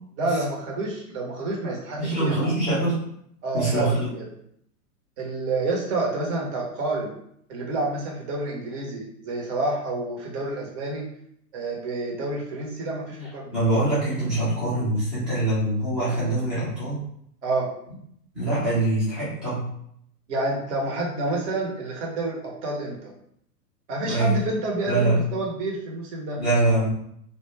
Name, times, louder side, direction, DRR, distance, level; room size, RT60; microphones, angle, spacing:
voice 1, 0.2-2.5 3.4-4.2 5.2-7.1 7.5-11.1 11.5-13.5 17.4-17.7 20.3-23.1 23.9-26.4, right 2 dB, 45° right, -3 dB, 1.0 m, -28 dB
voice 2, 2.0-3.0 3.5-4.1 13.5-17.0 18.3-19.6 24.1-24.3 24.9-25.2 26.3-26.9, right 2 dB, ahead, -12 dB, 0.3 m, -24 dB
2.4 x 2.1 x 3.3 m, 0.71 s
hypercardioid pair, 110°, 47 cm